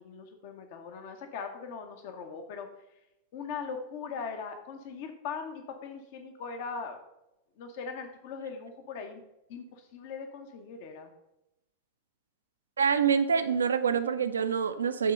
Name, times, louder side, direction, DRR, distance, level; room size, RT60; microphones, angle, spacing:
voice 1, 0.0-2.7 3.3-7.0 7.6-9.2 9.5-11.1, left 5 dB, 50° left, 6 dB, 0.7 m, -40 dB
voice 2, 12.8-15.1, right 6 dB, 70° right, 11 dB, 0.4 m, -26 dB
8.4 x 3.7 x 5.3 m, 0.90 s
figure-of-eight pair, 90°, 0 cm